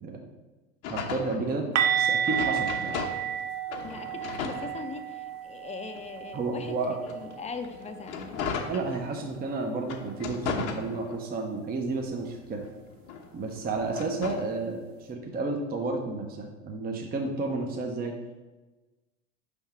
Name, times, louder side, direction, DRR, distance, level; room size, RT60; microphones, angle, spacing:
sound 1, 0.8-3.4 3.7-5.4 5.9-9.4 9.8-11.5 11.9-14.5, left 5 dB, 60° left, 1.0 m, -37 dB
voice 1, 0.9-3.0 6.3-7.0 8.7-12.6 13.3-18.1, right 3 dB, 25° right, 1 dB, 0.8 m, -32 dB
sound 2, 1.8-7.5 7.8-8.0 8.4-8.5 11.8-11.9, right 9 dB, 70° right, 0.7 m, -31 dB
voice 2, 3.8-6.8 7.0-8.5, left 5 dB, 15° left, 6 dB, 0.6 m, -40 dB
5.4 x 3.5 x 5.8 m, 1.2 s
hypercardioid pair, 80°, 39 cm